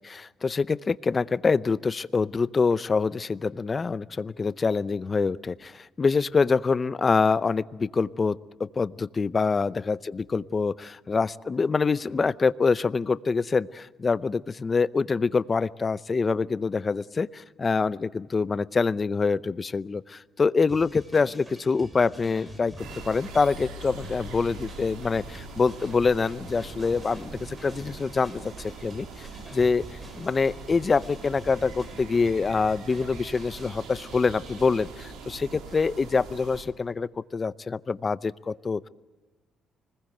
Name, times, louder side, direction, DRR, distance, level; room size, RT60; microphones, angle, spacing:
voice 1, 0.0-22.7 23.1-29.8 30.2-38.9, left 4 dB, 35° left, 18 dB, 0.6 m, -25 dB
sound 1, 20.7-34.9, equal, 15° right, 6.0 m, -47 dB
sound 2, 22.8-36.6, right 4 dB, 85° right, 4.0 m, -42 dB
25.5 x 20.5 x 7.9 m, 1.3 s
cardioid pair, 90°, 0 cm